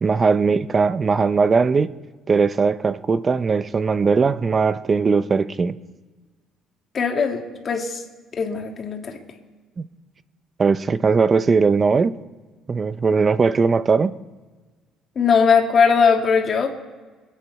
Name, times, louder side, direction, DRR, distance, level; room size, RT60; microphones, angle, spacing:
voice 1, 0.0-1.9 2.3-5.8 9.8-9.9 10.6-12.1 12.7-14.2, right 5 dB, 30° right, 14 dB, 0.6 m, -19 dB
voice 2, 6.9-8.0 8.4-9.0 15.2-16.7, left 6 dB, 40° left, 2 dB, 2.0 m, -19 dB
26.0 x 9.2 x 4.7 m, 1.4 s
cardioid pair, 120°, 0 cm